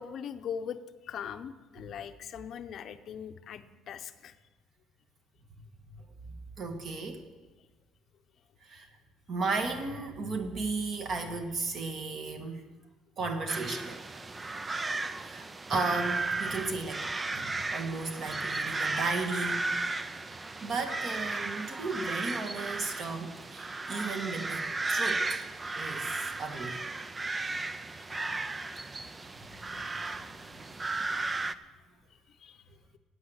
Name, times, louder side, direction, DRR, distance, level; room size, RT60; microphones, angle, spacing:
voice 1, 0.0-4.4 27.9-28.0 29.7-29.8 30.2-30.3 31.3-31.5 32.3-32.6, left 8 dB, 40° left, 10 dB, 0.8 m, -41 dB
voice 2, 6.6-7.2 8.6-8.9 9.3-12.7 13.2-14.0 15.2-19.7 20.6-25.5 25.7-26.8 29.6-30.9, right 3 dB, 35° right, 5 dB, 1.7 m, -35 dB
sound 1, 13.5-31.5, right 3 dB, 15° right, 0.4 m, -35 dB
15.5 x 9.3 x 8.0 m, 1.3 s
cardioid pair, 170°, 0 cm